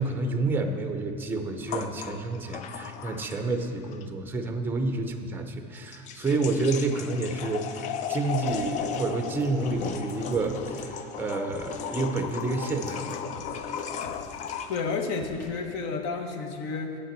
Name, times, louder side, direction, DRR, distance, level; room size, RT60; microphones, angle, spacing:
voice 1, 0.0-13.2, right 3 dB, 10° right, 5 dB, 0.6 m, -29 dB
sound 1, 1.7-3.6 3.9-4.0 5.8-14.9, left 7 dB, 35° left, 0.4 m, -35 dB
sound 2, 8.5-9.0 9.4-10.9 11.5-11.8 12.3-14.9 15.2-15.5, left 1 dB, 75° left, 1.7 m, -46 dB
voice 2, 14.7-17.0, left 4 dB, 55° left, 5 dB, 1.1 m, -31 dB
8.2 x 5.6 x 7.3 m, 2.4 s
supercardioid pair, 140°, 21 cm